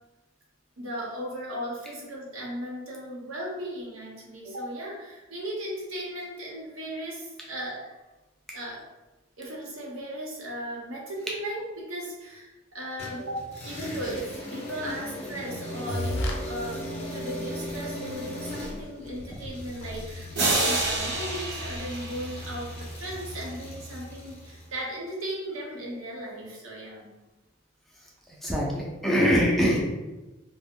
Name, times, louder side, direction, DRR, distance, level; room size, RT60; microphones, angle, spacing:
voice 1, 0.8-7.9 8.5-8.8 9.4-27.1, right 1 dB, 90° right, -4 dB, 0.8 m, -36 dB
sound 1, 13.0-24.8, left 1 dB, 30° left, 0.7 m, -38 dB
sound 2, 15.9-16.4 16.9-17.0 17.7-17.8 18.1-18.2 18.4-22.1, left 1 dB, 65° left, 0.4 m, -36 dB
sound 3, 20.4-23.0, right 2 dB, 55° right, 0.6 m, -28 dB
voice 2, 28.4-29.9, equal, ahead, -4 dB, 0.4 m, -23 dB
2.4 x 2.1 x 3.5 m, 1.1 s
head